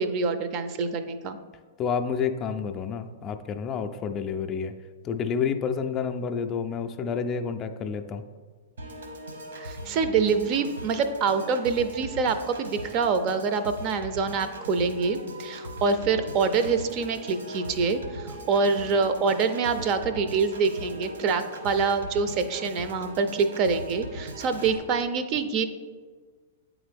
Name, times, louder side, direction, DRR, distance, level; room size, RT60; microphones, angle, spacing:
voice 1, 0.0-1.4 9.5-25.7, right 5 dB, 40° right, 10 dB, 0.5 m, -26 dB
voice 2, 1.8-4.7 5.0-8.2, left 6 dB, 30° left, 6 dB, 0.4 m, -29 dB
Piano / Organ, 8.8-24.8, right 1 dB, 75° right, 1.0 m, -40 dB
8.6 x 3.6 x 3.4 m, 1.5 s
figure-of-eight pair, 105°, 0 cm